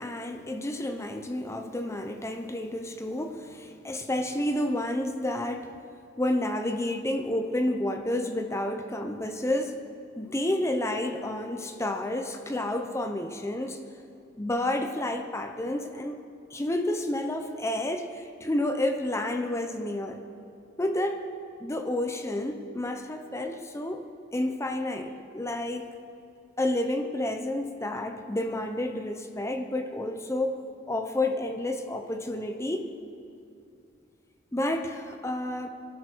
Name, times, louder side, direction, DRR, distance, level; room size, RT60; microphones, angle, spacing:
voice 1, 0.0-5.7 6.2-9.8 10.2-13.9 14.4-16.2 16.5-20.2 20.8-21.2 21.6-24.1 24.3-25.9 26.6-30.6 30.9-32.9 34.5-35.7, left 1 dB, 15° left, 6 dB, 0.7 m, -30 dB
24.0 x 12.5 x 4.6 m, 2.5 s
head